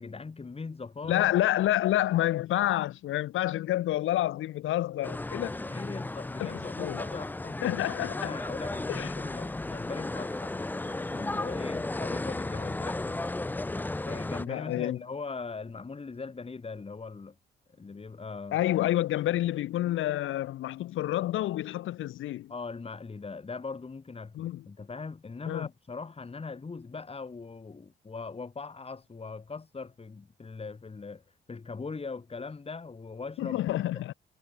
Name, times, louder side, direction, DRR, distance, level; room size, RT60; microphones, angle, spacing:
voice 1, 0.0-1.3 5.5-13.2 14.1-17.4 17.7-18.6 22.5-34.0, left 4 dB, 30° left, 7.6 m, -40 dB
voice 2, 1.1-5.5 6.4-7.0 7.6-8.3 8.9-9.1 14.5-15.0 18.5-22.5 24.3-24.6 25.5-25.7 33.4-34.1, left 14 dB, 80° left, 1.7 m, -28 dB
sound 1, 5.0-14.4, left 2 dB, 10° left, 0.5 m, -34 dB
cardioid pair, 90°, 20 cm